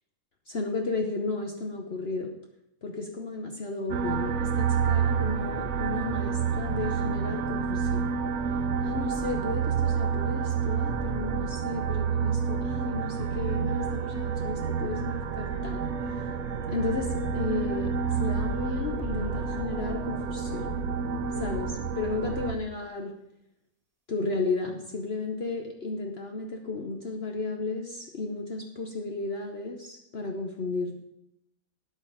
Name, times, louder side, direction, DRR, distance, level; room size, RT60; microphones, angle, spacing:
voice 1, 0.5-2.3 2.8-8.1 8.8-15.8 16.1-16.2 16.7-17.9 18.2-20.8 21.4-23.1 24.1-31.0, left 3 dB, 50° left, 2 dB, 1.2 m, -33 dB
sound 1, 3.9-22.6, right 6 dB, 60° right, 0.9 m, -29 dB
sound 2, 13.0-21.3, right 2 dB, 25° right, 1.6 m, -52 dB
sound 3, 16.8-22.2, left 5 dB, 80° left, 2.1 m, -40 dB
9.9 x 8.7 x 5.7 m, 0.83 s
omnidirectional pair, 1.5 m